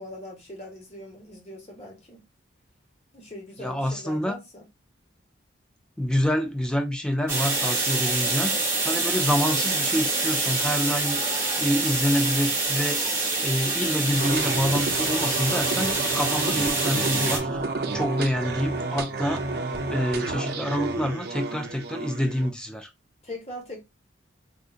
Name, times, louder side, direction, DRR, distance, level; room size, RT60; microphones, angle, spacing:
voice 1, 0.0-2.2 3.1-4.7 23.2-23.8, left 1 dB, 35° left, 1.2 m, -41 dB
voice 2, 3.6-4.4 6.0-11.2 11.6-13.0 13.4-17.5 17.9-19.6 19.9-22.9, equal, 5° left, 0.4 m, -27 dB
sound 1, 7.3-17.4, right 3 dB, 15° right, 1.2 m, -26 dB
sound 2, 14.2-22.5, right 3 dB, 55° right, 0.5 m, -30 dB
3.6 x 2.6 x 2.5 m
head